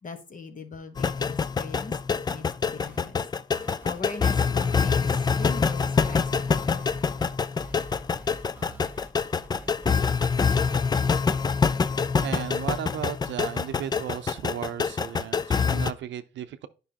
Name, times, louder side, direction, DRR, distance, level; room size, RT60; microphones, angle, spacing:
voice 1, 0.0-3.2 3.6-7.0, left 4 dB, 40° left, 1.3 m, -41 dB
sound 1, 1.0-15.9, left 5 dB, 20° left, 0.3 m, -25 dB
sound 2, 2.8-3.3 3.6-5.3 5.6-10.8, right 1 dB, 10° right, 1.6 m, -46 dB
voice 2, 12.2-16.7, right 11 dB, 70° right, 0.6 m, -35 dB
9.4 x 5.5 x 2.9 m
cardioid pair, 90°, 20 cm